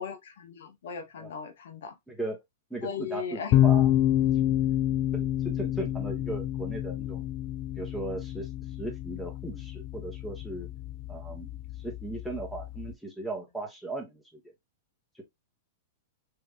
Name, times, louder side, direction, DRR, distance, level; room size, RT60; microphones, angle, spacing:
voice 1, 0.0-1.9 2.8-3.5, left 7 dB, 70° left, 0.9 m, -37 dB
voice 2, 2.1-2.4 2.7-3.9 5.1-7.2 7.7-8.5 8.8-10.7 11.1-14.4, right 2 dB, ahead, 1.4 m, -37 dB
sound 1, 3.5-12.9, left 12 dB, 45° left, 0.5 m, -28 dB
3.4 x 3.2 x 2.5 m
hypercardioid pair, 115°, 0 cm